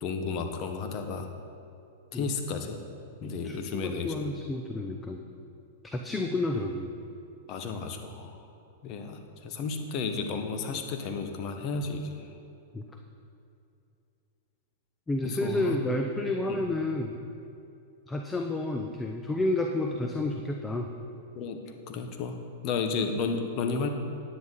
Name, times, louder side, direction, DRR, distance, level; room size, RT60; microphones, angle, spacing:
voice 1, 0.0-1.3 2.1-2.8 3.2-4.2 7.5-8.4 8.8-12.3 15.2-15.8 16.5-16.7 20.0-20.1 21.4-22.4 22.6-23.9, left 4 dB, 45° left, 5 dB, 1.1 m, -33 dB
voice 2, 3.2-5.2 5.8-6.9 12.7-12.9 15.1-17.1 18.1-20.9, left 2 dB, 15° left, 3 dB, 0.6 m, -30 dB
10.0 x 9.5 x 4.1 m, 2.6 s
hypercardioid pair, 115°, 0 cm